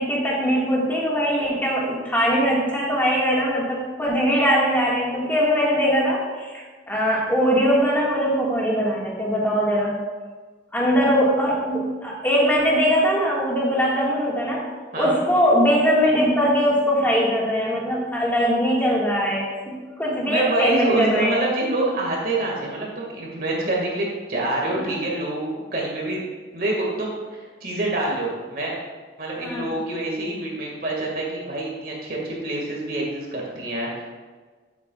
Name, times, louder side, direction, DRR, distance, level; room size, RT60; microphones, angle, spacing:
voice 1, 0.0-10.0 10.7-14.6 15.0-21.4 24.7-24.8 29.4-29.7, equal, 10° left, -5 dB, 1.8 m, -21 dB
voice 2, 20.2-26.2 26.5-28.7 29.2-34.0, right 2 dB, 50° right, -2 dB, 2.0 m, -26 dB
11.5 x 7.5 x 2.4 m, 1.4 s
head